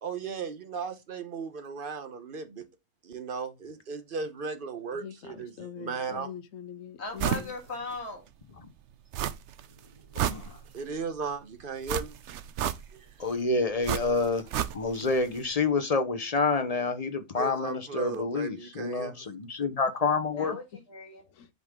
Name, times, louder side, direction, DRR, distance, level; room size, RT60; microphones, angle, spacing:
voice 1, 0.0-2.7 3.0-6.3 10.7-12.2 12.9-13.3 17.3-19.3, right 5 dB, 45° right, 1.1 m, -36 dB
voice 2, 4.9-7.5 21.3-21.5, left 8 dB, 80° left, 1.1 m, -43 dB
voice 3, 7.0-8.2 20.3-21.2, left 3 dB, 55° left, 2.3 m, -38 dB
sound 1, 7.2-7.5 7.9-8.0 9.1-9.6 10.0-10.9 11.9-13.1 13.8-15.1 15.4-15.5, right 10 dB, 65° right, 0.9 m, -31 dB
voice 4, 10.1-10.6 13.2-14.5 14.7-20.5, left 4 dB, 35° left, 0.7 m, -28 dB
8.0 x 5.3 x 3.6 m
omnidirectional pair, 1.4 m